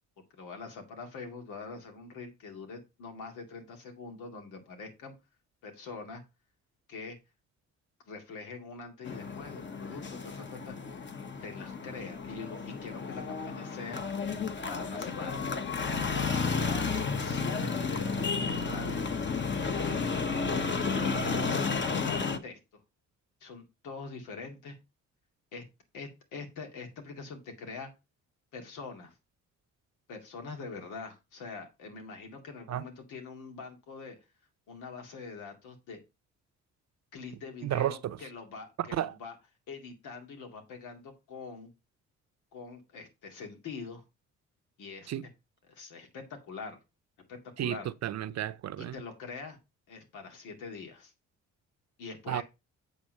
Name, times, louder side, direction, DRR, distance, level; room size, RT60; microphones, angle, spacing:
voice 1, 0.3-5.1 5.6-6.2 6.9-7.2 8.1-10.7 11.4-14.0 14.7-15.4 16.4-16.9 17.2-19.0 20.3-22.8 23.4-24.8 25.5-25.6 25.9-27.9 28.5-29.2 30.1-34.2 34.7-36.0 37.1-39.4 39.7-41.7 42.5-44.0 44.8-45.1 45.7-46.8 47.3-47.9 48.8-49.6 49.9-51.1 52.0-52.4, left 4 dB, 90° left, 2.4 m, -44 dB
sound 1, 9.0-22.4, left 4 dB, 40° left, 1.3 m, -32 dB
voice 2, 37.6-38.2 38.9-39.1 45.1-45.2 47.6-48.9 52.3-52.4, right 12 dB, 60° right, 0.7 m, -32 dB
8.5 x 3.8 x 6.4 m
cardioid pair, 90°, 30 cm